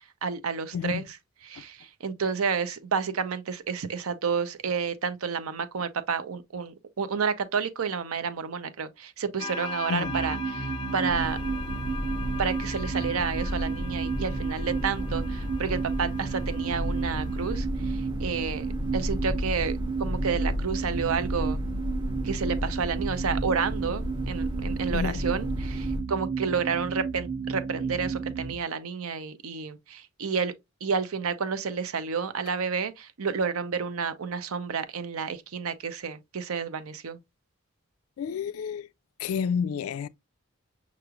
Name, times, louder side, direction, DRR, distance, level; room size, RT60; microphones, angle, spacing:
voice 1, 0.2-1.2 1.4-11.4 12.4-18.7 18.9-21.6 22.2-30.5 30.8-37.2, right 5 dB, 85° right, 0.6 m, -30 dB
sound 1, 9.4-17.6, left 4 dB, 20° left, 0.5 m, -40 dB
sound 2, 10.0-28.5, right 5 dB, 55° right, 1.1 m, -33 dB
sound 3, 11.1-26.0, left 1 dB, 20° right, 0.7 m, -33 dB
voice 2, 24.9-25.2 38.2-38.9 39.2-40.1, left 6 dB, 85° left, 0.3 m, -29 dB
5.9 x 3.1 x 2.3 m
head